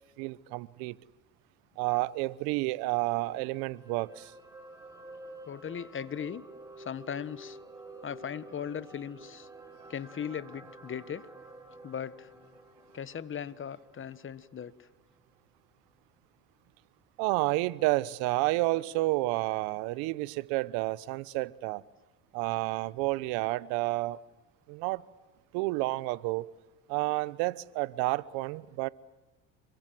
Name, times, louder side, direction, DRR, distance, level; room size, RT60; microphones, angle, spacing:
voice 1, 0.2-1.0 1.8-4.3 17.2-21.8 22.3-24.2 24.7-25.0 25.5-26.4 26.9-28.9, right 21 dB, 75° right, 1.1 m, -30 dB
sound 1, 3.0-15.4 15.7-15.9, right 1 dB, 10° right, 5.1 m, -51 dB
voice 2, 5.5-6.4 6.8-7.6 8.0-9.5 9.9-11.3 11.8-12.3 12.9-14.9, left 8 dB, 35° left, 1.4 m, -38 dB
28.0 x 23.5 x 7.7 m
supercardioid pair, 85°, 37 cm